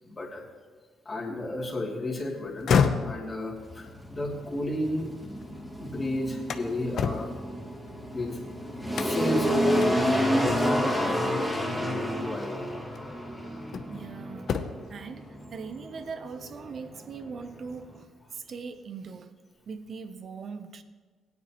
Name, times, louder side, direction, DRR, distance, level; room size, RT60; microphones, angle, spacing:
voice 1, 0.0-0.4 1.0-2.7 3.0-5.1 5.8-7.3 8.1-8.4 9.0-12.7, left 1 dB, 30° left, -3 dB, 2.7 m, -32 dB
sound 1, 2.4-5.6 6.0-8.4 8.9-9.4 9.8-9.9 10.5-11.0 12.2-12.3 12.9-14.1 14.4-15.0, left 6 dB, 65° left, 0.7 m, -30 dB
sound 2, 3.6-18.0, equal, 10° right, 2.1 m, -30 dB
voice 2, 13.9-18.1 18.3-19.3 19.7-20.8, right 5 dB, 50° right, 10 dB, 0.7 m, -40 dB
17.0 x 9.5 x 3.0 m, 1.5 s
cardioid pair, 90°, 0 cm